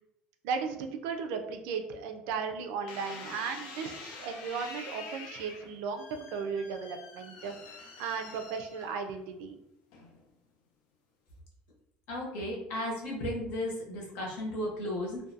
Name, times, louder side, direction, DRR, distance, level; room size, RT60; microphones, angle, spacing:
voice 1, 0.4-7.5 8.0-9.5, right 5 dB, 80° right, 5 dB, 0.4 m, -36 dB
sound 1, 2.9-9.3 9.9-10.4, left 4 dB, 85° left, 0.5 m, -46 dB
voice 2, 12.1-15.2, left 1 dB, 60° left, -2 dB, 0.8 m, -34 dB
2.4 x 2.2 x 2.6 m, 0.80 s
cardioid pair, 175°, 3 cm